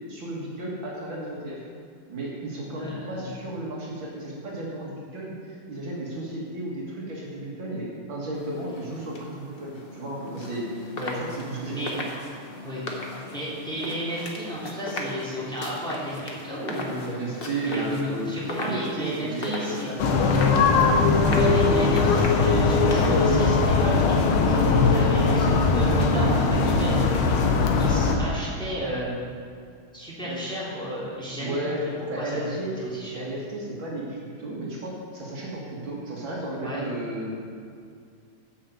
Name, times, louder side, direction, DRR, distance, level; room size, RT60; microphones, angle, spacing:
voice 1, 0.1-1.6 2.1-10.7 11.1-12.0 17.1-18.3 18.6-20.3 30.2-30.7 31.4-31.8 32.1-32.7 33.2-37.3, right 2 dB, 65° right, -4 dB, 2.5 m, -34 dB
voice 2, 2.7-3.3 10.9-11.2 11.6-11.9 12.6-12.8 13.3-17.0 17.6-19.9 21.2-24.7 24.9-27.0 27.7-29.1 29.9-31.6 32.2-33.2 36.6-36.8, right 1 dB, ahead, -8 dB, 2.8 m, -32 dB
sound 1, 8.3-24.4, left 2 dB, 35° left, 1.0 m, -37 dB
sound 2, 20.0-28.2, left 4 dB, 80° left, 1.8 m, -20 dB
9.9 x 6.2 x 7.7 m, 2.3 s
omnidirectional pair, 2.4 m